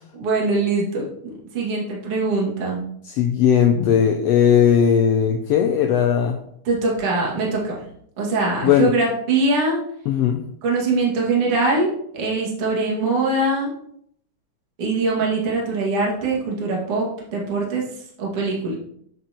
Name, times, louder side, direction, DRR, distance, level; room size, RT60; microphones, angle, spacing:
voice 1, 0.1-2.8 6.6-7.8 8.2-9.8 10.6-13.7 14.8-17.8 18.2-18.8, right 3 dB, 50° right, -3 dB, 2.8 m, -22 dB
voice 2, 3.0-6.4 8.6-9.0 10.1-10.4, left 8 dB, 85° left, 5 dB, 1.4 m, -17 dB
9.3 x 7.8 x 2.9 m, 0.70 s
omnidirectional pair, 3.5 m